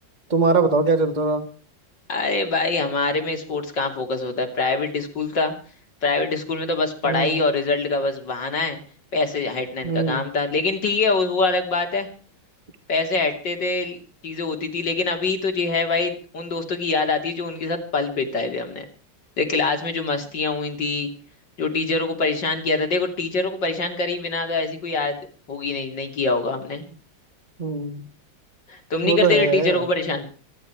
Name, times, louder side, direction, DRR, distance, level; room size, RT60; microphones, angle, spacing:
voice 1, 0.3-1.4 7.0-7.4 9.8-10.3 27.6-28.0 29.0-29.9, right 4 dB, 25° right, 6 dB, 1.7 m, -21 dB
voice 2, 2.1-5.5 6.0-8.8 9.1-12.1 12.9-14.0 14.2-18.9 19.4-21.1 21.6-25.2 25.5-26.8 28.7-30.3, left 3 dB, 75° left, 5 dB, 3.6 m, -24 dB
25.0 x 11.0 x 4.6 m, 0.40 s
omnidirectional pair, 2.0 m